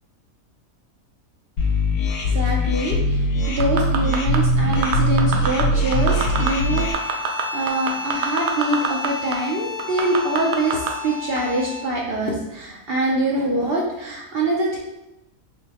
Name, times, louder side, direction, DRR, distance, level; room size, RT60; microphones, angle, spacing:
sound 1, 1.6-6.9, left 1 dB, 90° left, 1.2 m, -21 dB
voice 1, 2.2-14.8, right 1 dB, 70° right, -3 dB, 0.5 m, -24 dB
sound 2, 3.6-4.4 4.7-5.6 5.9-6.5 6.8-9.1 9.3-9.4 9.8-10.9 11.4-11.5, right 9 dB, 90° right, 1.1 m, -24 dB
sound 3, 5.8-12.0, left 4 dB, 60° left, 0.9 m, -32 dB
4.1 x 2.0 x 4.1 m, 0.92 s
omnidirectional pair, 1.7 m